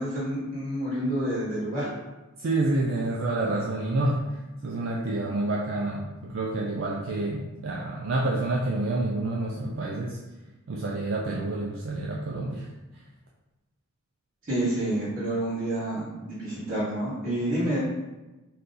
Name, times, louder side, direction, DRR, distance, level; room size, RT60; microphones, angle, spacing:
voice 1, 0.0-1.9 14.5-17.8, right 1 dB, 40° right, -13 dB, 1.1 m, -28 dB
voice 2, 2.4-4.2 4.6-10.2 10.7-12.7, right 2 dB, 60° right, -3 dB, 0.4 m, -28 dB
2.8 x 2.5 x 3.7 m, 1.1 s
head